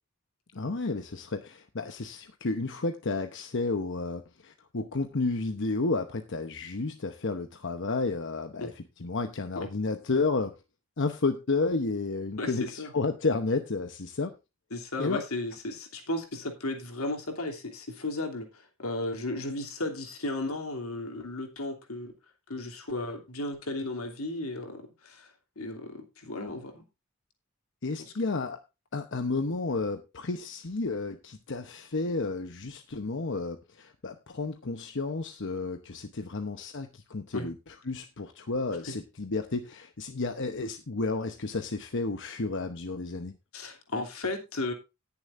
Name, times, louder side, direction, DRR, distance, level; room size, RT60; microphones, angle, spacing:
voice 1, 0.5-10.5 11.0-14.3 15.0-15.2 27.8-28.6 28.9-37.5 37.9-43.3, left 3 dB, 60° left, 7 dB, 0.9 m, -31 dB
voice 2, 12.4-12.9 14.7-22.1 22.5-26.8 28.0-28.1 37.3-37.5 38.9-39.0 43.5-44.7, left 2 dB, 85° left, 3 dB, 2.9 m, -35 dB
18.5 x 7.1 x 2.6 m, 0.26 s
head